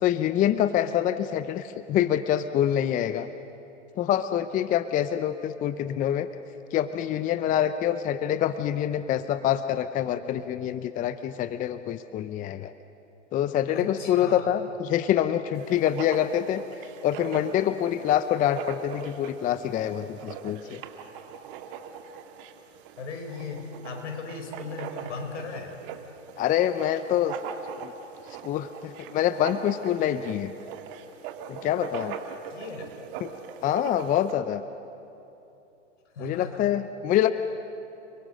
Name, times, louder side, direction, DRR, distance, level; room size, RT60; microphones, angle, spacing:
voice 1, 0.0-3.3 4.0-6.3 6.7-12.7 13.3-16.6 17.0-20.8 26.4-27.4 27.8-27.9 28.4-30.5 31.5-32.2 33.2-33.3 33.6-34.6 36.2-37.3, left 10 dB, 20° left, 12 dB, 0.7 m, -26 dB
voice 2, 13.7-14.5 23.0-25.8 32.5-33.0 36.1-36.7, left 4 dB, 70° left, 5 dB, 4.9 m, -38 dB
Writing, 15.6-34.3, right 8 dB, 45° right, 2.2 m, -41 dB
30.0 x 22.5 x 6.5 m, 2.9 s
hypercardioid pair, 115°, 37 cm